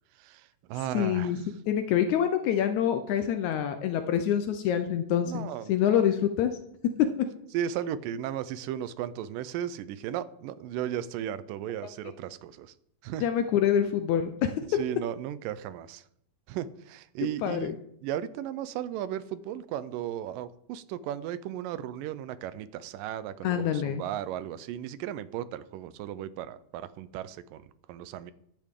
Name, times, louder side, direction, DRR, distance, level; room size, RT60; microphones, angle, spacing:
voice 1, 0.2-1.4 5.3-6.0 7.5-12.7 13.0-13.3 14.7-16.0 16.5-28.3, right 11 dB, 85° right, 15 dB, 2.2 m, -35 dB
voice 2, 0.9-1.4 1.7-6.6 7.0-7.1 13.2-14.5 17.4-17.8 23.4-24.0, left 9 dB, 75° left, 8 dB, 1.8 m, -26 dB
14.0 x 10.0 x 3.7 m, 0.72 s
omnidirectional pair, 3.9 m